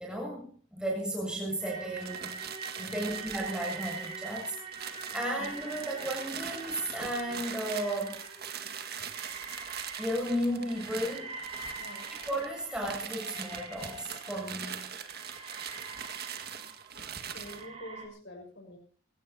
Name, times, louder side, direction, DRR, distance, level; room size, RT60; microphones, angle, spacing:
voice 1, 0.0-2.4 2.8-8.2 10.0-11.3 12.1-14.8 17.0-17.1, equal, 5° right, -2 dB, 7.5 m, -34 dB
sound 1, 1.6-18.1, right 4 dB, 30° right, 5.5 m, -44 dB
sound 2, 1.9-17.7, right 8 dB, 50° right, 1.9 m, -42 dB
voice 2, 14.6-15.0 16.5-16.7 17.3-18.8, equal, 55° left, 3 dB, 6.2 m, -48 dB
25.0 x 17.5 x 2.8 m, 0.39 s
head